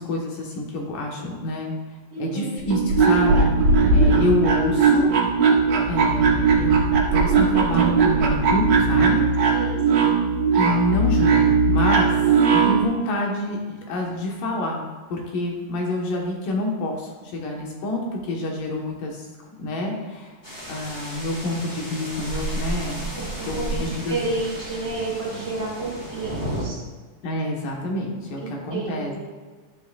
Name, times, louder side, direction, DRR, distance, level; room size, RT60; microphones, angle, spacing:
voice 1, 0.0-1.7 2.2-5.1 5.9-9.3 10.5-12.1 12.5-14.8 15.1-19.3 19.6-20.4 20.7-24.2 27.2-29.3, left 1 dB, 70° left, -1 dB, 2.8 m, -27 dB
voice 2, 2.1-2.5 9.5-10.1 23.1-26.8 28.4-29.3, right 3 dB, 45° right, -4 dB, 3.1 m, -31 dB
sound 1, 2.6-12.8, right 4 dB, 60° right, 2.0 m, -19 dB
sound 2, 7.7-10.1, right 6 dB, 80° right, 2.6 m, -32 dB
sound 3, 20.4-26.6, right 1 dB, 15° left, 2.0 m, -33 dB
11.5 x 10.0 x 2.4 m, 1.4 s
omnidirectional pair, 4.2 m